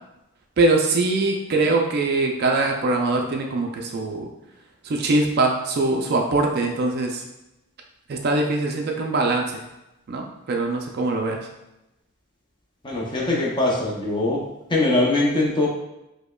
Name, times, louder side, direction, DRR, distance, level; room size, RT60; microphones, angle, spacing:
voice 1, 0.6-4.3 4.8-7.2 8.1-9.6 10.1-11.4, right 2 dB, 45° right, 2 dB, 0.3 m, -22 dB
voice 2, 12.8-14.4 14.7-15.7, left 2 dB, 20° left, -3 dB, 0.6 m, -22 dB
5.0 x 2.1 x 2.2 m, 0.93 s
head